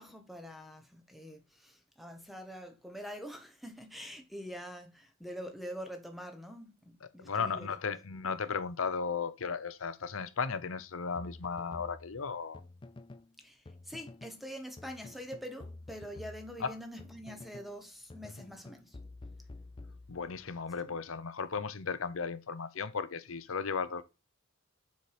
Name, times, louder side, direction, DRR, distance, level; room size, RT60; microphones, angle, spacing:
voice 1, 0.0-7.8 13.4-19.0 20.9-21.0, equal, ahead, 1.2 m, -45 dB
voice 2, 7.2-12.6 16.6-16.7 20.1-24.0, left 5 dB, 75° left, 0.7 m, -35 dB
sound 1, 11.2-13.3 13.7-14.4 14.8-17.8 18.1-20.5, left 2 dB, 25° left, 0.4 m, -49 dB
6.8 x 4.7 x 4.9 m
head